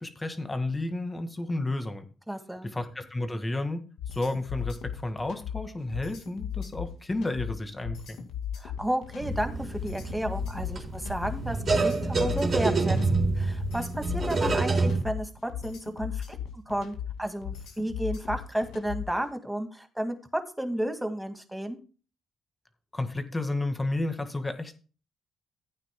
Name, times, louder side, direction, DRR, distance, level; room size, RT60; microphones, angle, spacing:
voice 1, 0.0-2.1 2.6-3.8 4.1-8.2 22.9-24.7, left 2 dB, 15° left, 8 dB, 1.8 m, -31 dB
voice 2, 2.3-2.7 8.6-20.2 20.6-21.8, right 1 dB, 5° right, 6 dB, 2.0 m, -32 dB
sound 1, 4.0-19.2, left 9 dB, 85° left, 2.1 m, -37 dB
sound 2, 9.2-15.0, right 3 dB, 45° right, 3.7 m, -27 dB
15.0 x 9.1 x 2.2 m, 0.36 s
cardioid pair, 90°, 0 cm